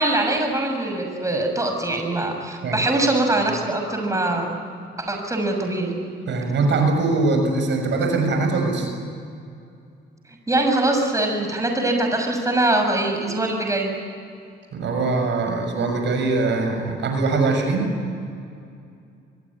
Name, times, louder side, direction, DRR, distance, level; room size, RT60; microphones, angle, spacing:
voice 1, 0.0-4.6 5.0-5.9 10.5-13.9, right 2 dB, 15° right, 3 dB, 6.5 m, -22 dB
voice 2, 6.3-8.9 14.7-17.9, right 3 dB, 65° right, 4 dB, 6.5 m, -22 dB
24.5 x 23.0 x 9.9 m, 2.4 s
cardioid pair, 90°, 20 cm